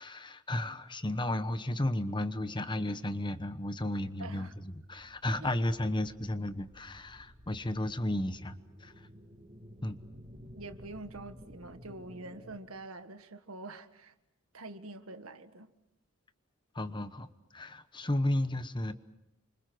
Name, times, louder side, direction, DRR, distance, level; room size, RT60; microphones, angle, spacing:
voice 1, 0.0-8.5 8.8-9.1 9.8-10.0 16.7-18.9, left 1 dB, 20° left, 1.1 m, -33 dB
voice 2, 4.2-4.5 5.4-5.5 10.5-14.1 14.5-15.7, right 2 dB, 80° right, 1.7 m, -46 dB
sound 1, 4.7-12.6, equal, 30° right, 4.3 m, -53 dB
29.0 x 25.5 x 6.3 m
head